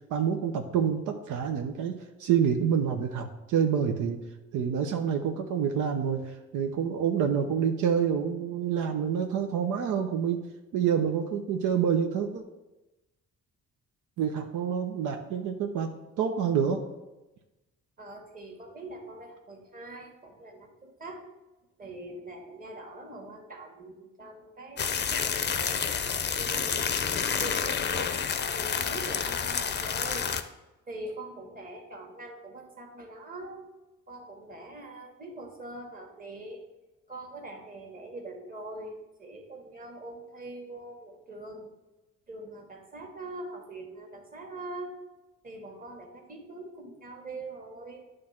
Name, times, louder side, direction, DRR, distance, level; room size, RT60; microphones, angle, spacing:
voice 1, 0.1-4.2 4.5-10.4 10.7-12.4 14.2-15.9 16.2-16.8, right 7 dB, 80° right, 4 dB, 0.7 m, -27 dB
voice 2, 18.0-21.2 21.8-25.9 26.4-28.1 28.5-30.3 30.9-33.7 34.1-36.6 37.1-41.7 42.3-44.9 45.4-48.1, right 2 dB, 30° right, 2 dB, 1.6 m, -43 dB
sound 1, 24.8-30.4, left 7 dB, 35° left, 0.6 m, -29 dB
9.5 x 3.2 x 5.8 m, 1.0 s
cardioid pair, 90°, 30 cm